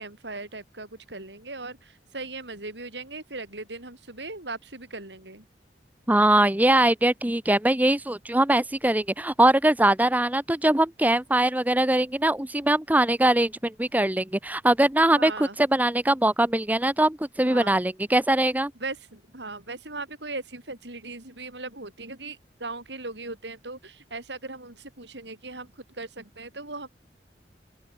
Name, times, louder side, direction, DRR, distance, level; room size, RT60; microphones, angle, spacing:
voice 1, 0.0-5.4 15.1-15.6 17.4-17.7 18.8-25.7 26.0-26.9, right 3 dB, 85° right, 7.2 m, -38 dB
voice 2, 6.1-18.7, right 1 dB, 10° right, 0.8 m, -22 dB
open air
head